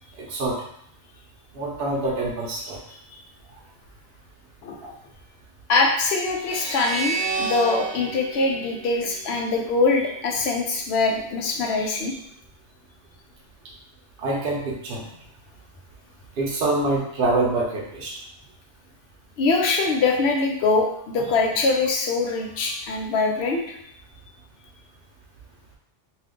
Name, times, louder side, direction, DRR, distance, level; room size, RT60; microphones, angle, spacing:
voice 1, 0.2-0.6 1.5-2.8 14.2-15.1 16.4-18.1, right 2 dB, 60° right, -4 dB, 0.8 m, -25 dB
voice 2, 4.6-4.9 5.7-12.2 19.4-23.8, left 3 dB, 65° left, 1 dB, 0.8 m, -23 dB
sound 1, 6.4-9.7, right 4 dB, 85° right, 0.3 m, -31 dB
2.7 x 2.3 x 3.6 m, 0.69 s
omnidirectional pair, 1.2 m